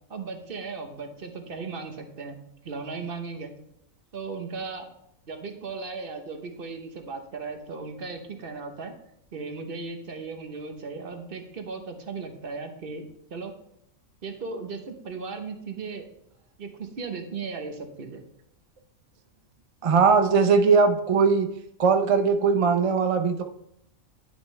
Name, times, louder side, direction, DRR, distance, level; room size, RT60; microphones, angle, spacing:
voice 1, 0.1-2.4 2.6-3.5 4.1-4.9 5.3-8.9 9.3-13.5 14.2-16.1 16.6-18.2, right 4 dB, 45° right, 6 dB, 1.1 m, -36 dB
voice 2, 19.8-21.5 21.8-23.4, right 5 dB, 60° right, 7 dB, 0.3 m, -20 dB
10.5 x 6.2 x 3.2 m, 0.78 s
omnidirectional pair, 1.5 m